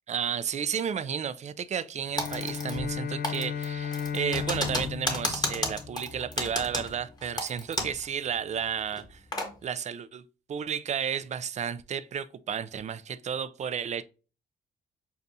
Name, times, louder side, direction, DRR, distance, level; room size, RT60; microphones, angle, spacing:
voice 1, 0.1-9.2 9.6-10.2 10.5-14.0, right 8 dB, 35° right, 0.4 m, -32 dB
Bowed string instrument, 2.0-6.5, left 7 dB, 50° left, 0.4 m, -35 dB
Typing, 2.2-3.0 3.2-8.1 8.3-8.4 8.9-9.5, left 1 dB, 20° left, 1.2 m, -32 dB
6.7 x 2.4 x 2.6 m
cardioid pair, 90°, 20 cm